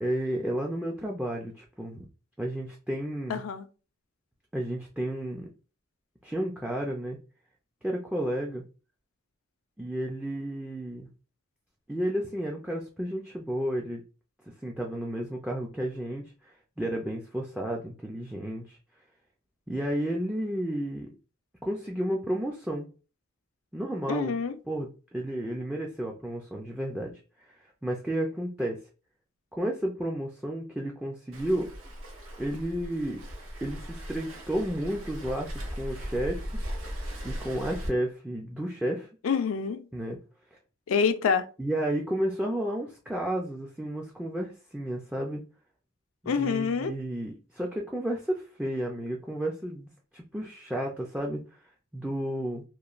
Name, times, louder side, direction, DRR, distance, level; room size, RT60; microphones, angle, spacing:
voice 1, 0.0-2.1 2.4-3.4 4.5-5.5 6.2-7.2 7.8-8.6 9.8-11.1 11.9-14.0 14.6-16.3 16.8-18.8 19.7-21.1 21.6-22.9 23.7-24.3 24.7-27.1 27.5-28.8 29.5-31.7 32.4-33.2 33.6-36.5 37.2-39.1 39.9-40.2 41.6-45.4 46.2-51.4 51.9-52.6, right 1 dB, 5° right, 0.3 m, -32 dB
voice 2, 3.3-3.7 24.1-24.6 39.2-39.8 40.9-41.5 46.3-46.9, left 6 dB, 80° left, 0.4 m, -26 dB
Waves surf, 31.3-37.9, equal, 80° right, 0.8 m, -38 dB
3.0 x 2.2 x 2.4 m
head